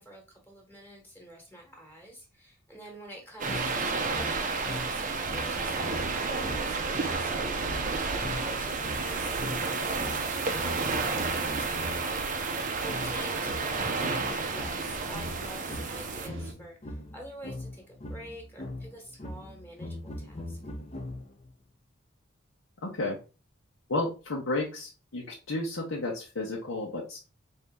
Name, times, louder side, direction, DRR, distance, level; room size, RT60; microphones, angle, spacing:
voice 1, 0.0-20.6, right 1 dB, 10° left, 0 dB, 1.2 m, -47 dB
sound 1, 3.4-16.3, right 4 dB, 40° right, 0.5 m, -31 dB
sound 2, 3.5-12.2 12.9-21.5, left 1 dB, 30° left, 0.6 m, -41 dB
sound 3, 5.0-16.5, right 2 dB, 70° right, 0.7 m, -44 dB
voice 2, 22.8-23.2 23.9-27.2, left 2 dB, 90° left, -2 dB, 1.0 m, -32 dB
4.2 x 2.8 x 3.5 m, 0.31 s
head